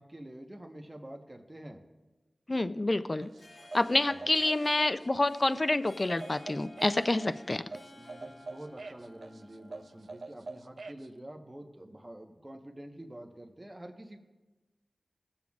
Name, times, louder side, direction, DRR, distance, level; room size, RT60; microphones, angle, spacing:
voice 1, 0.0-1.8 4.1-4.2 7.9-14.2, right 1 dB, 25° right, 3 dB, 1.0 m, -47 dB
voice 2, 2.5-3.3 3.7-7.6, left 2 dB, 35° left, 12 dB, 0.4 m, -28 dB
Harp, 3.2-10.5, left 2 dB, 70° left, 1.4 m, -54 dB
sound 1, 3.2-11.1, right 3 dB, 80° right, 0.4 m, -45 dB
19.0 x 7.3 x 2.4 m, 1.2 s
wide cardioid pair, 85°, 0 cm